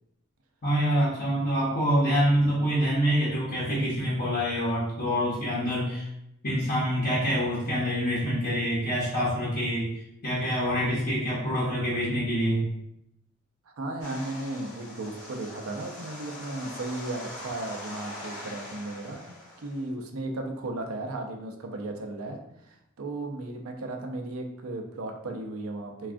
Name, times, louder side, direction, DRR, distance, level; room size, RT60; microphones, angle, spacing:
voice 1, 0.6-6.1 6.4-12.7, equal, 45° left, -8 dB, 0.8 m, -26 dB
voice 2, 13.7-19.2 19.6-26.1, right 2 dB, 80° right, 3 dB, 0.5 m, -35 dB
sound 1, 14.0-19.9, left 1 dB, 80° left, 0.8 m, -42 dB
3.4 x 2.3 x 2.4 m, 0.81 s
head